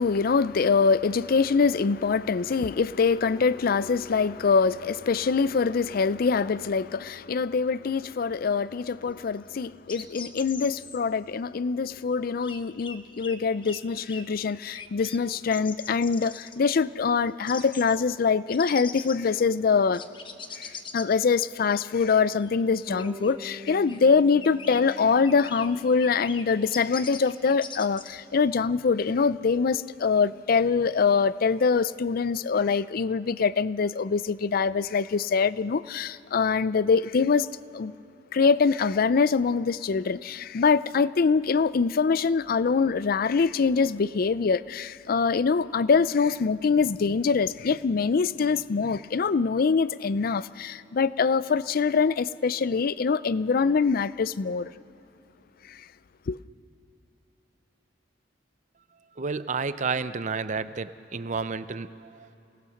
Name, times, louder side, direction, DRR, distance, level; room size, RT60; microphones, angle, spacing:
voice 1, 0.0-20.0 20.6-37.5 37.7-37.9 38.3-54.7 55.7-55.8 56.3-56.4, left 5 dB, 50° left, 0.4 m, -24 dB
sound 1, 9.9-11.0 12.4-13.4 13.6-13.8 14.1-14.2 14.7-15.2 15.5-16.6 17.5-18.0 18.5-19.3 19.9-21.1 21.7-22.0 22.4-22.6 22.9-23.4 23.6-24.0 24.4-24.8 25.3-25.7 26.0-26.4 26.7-28.1, left 5 dB, 25° left, 1.0 m, -41 dB
Bass guitar, 22.9-27.0, left 1 dB, 15° right, 1.2 m, -45 dB
voice 2, 59.2-62.4, right 4 dB, 40° right, 0.6 m, -31 dB
28.5 x 18.5 x 6.4 m
head